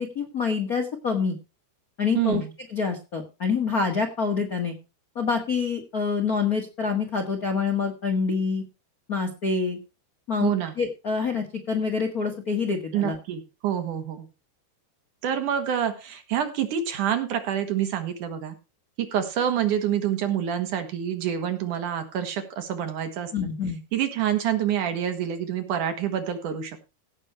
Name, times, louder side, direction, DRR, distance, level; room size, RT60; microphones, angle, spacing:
voice 1, 0.0-1.4 2.0-2.4 2.7-4.7 5.1-8.6 9.1-9.8 10.3-13.2 23.3-23.8, left 5 dB, 50° left, 3 dB, 1.1 m, -26 dB
voice 2, 2.1-2.5 10.4-10.7 12.9-14.3 15.2-18.5 19.0-23.3 23.9-26.8, right 9 dB, 60° right, 7 dB, 2.7 m, -27 dB
16.5 x 6.4 x 4.4 m, 0.30 s
omnidirectional pair, 4.4 m